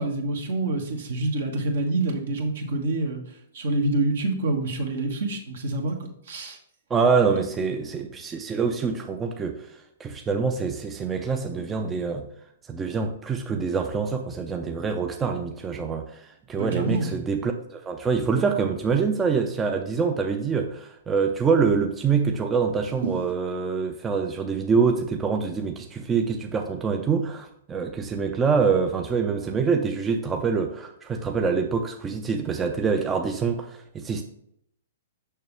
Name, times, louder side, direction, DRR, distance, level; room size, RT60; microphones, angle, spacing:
voice 1, 0.0-3.2 3.5-6.0 6.3-6.6 16.6-17.2 23.0-23.2, right 2 dB, 65° right, 2 dB, 1.4 m, -26 dB
voice 2, 6.9-9.6 10.0-12.3 12.7-16.2 16.5-34.2, right 5 dB, 15° right, 4 dB, 0.5 m, -25 dB
6.6 x 6.0 x 3.4 m, 0.73 s
figure-of-eight pair, 115°, 0 cm